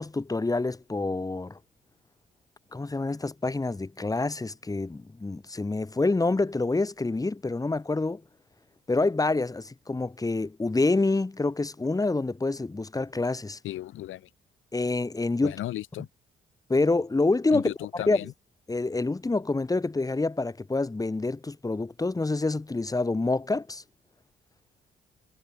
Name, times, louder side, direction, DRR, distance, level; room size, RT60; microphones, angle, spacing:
voice 1, 0.0-1.6 2.7-8.2 8.9-13.6 14.7-15.5 16.7-18.2 18.7-23.8, left 3 dB, 20° left, 2.1 m, -27 dB
voice 2, 13.6-14.3 15.4-16.1 17.5-18.3, left 14 dB, 85° left, 2.8 m, -35 dB
cardioid pair, 90°, 20 cm